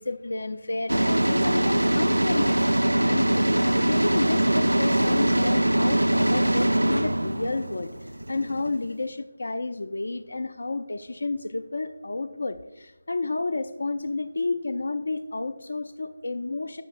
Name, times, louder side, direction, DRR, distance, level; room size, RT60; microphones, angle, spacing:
voice 1, 0.0-16.8, left 3 dB, 60° left, 13 dB, 0.4 m, -31 dB
sound 1, 0.9-8.9, right 1 dB, 75° right, 0.4 m, -22 dB
13.0 x 8.0 x 2.5 m, 1.1 s
figure-of-eight pair, 155°, 0 cm